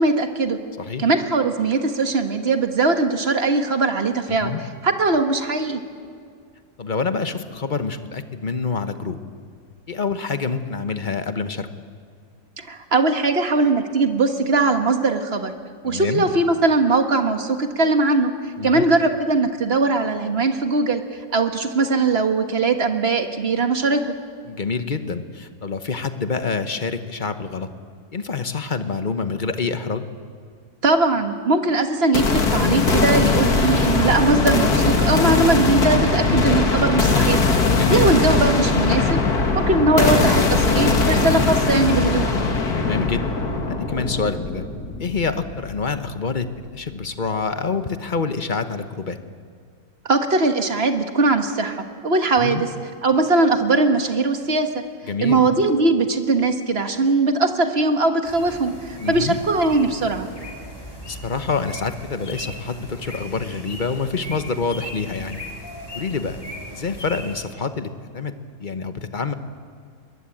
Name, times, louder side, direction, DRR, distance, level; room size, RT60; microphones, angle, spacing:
voice 1, 0.0-0.6 1.0-4.5 4.8-5.8 12.6-15.5 15.8-18.3 18.6-21.0 21.3-24.0 30.8-37.5 37.9-39.2 39.5-42.3 50.1-52.7 53.0-54.7 55.2-60.3, right 3 dB, 45° right, 6 dB, 1.7 m, -20 dB
voice 2, 4.3-4.6 6.8-9.2 9.9-11.7 15.8-16.2 18.6-18.8 24.5-27.7 28.1-30.1 36.3-36.5 37.7-38.1 42.8-43.3 43.7-44.6 45.0-49.2 52.4-52.6 55.0-55.4 59.0-59.4 61.1-65.4 65.9-66.4 66.7-68.3 68.6-69.3, left 4 dB, 35° left, 9 dB, 1.1 m, -27 dB
sound 1, 32.1-46.1, left 3 dB, 80° left, 2.5 m, -20 dB
sound 2, 58.2-67.4, equal, 15° left, 3.8 m, -37 dB
22.0 x 21.0 x 8.7 m, 2.1 s
omnidirectional pair, 1.6 m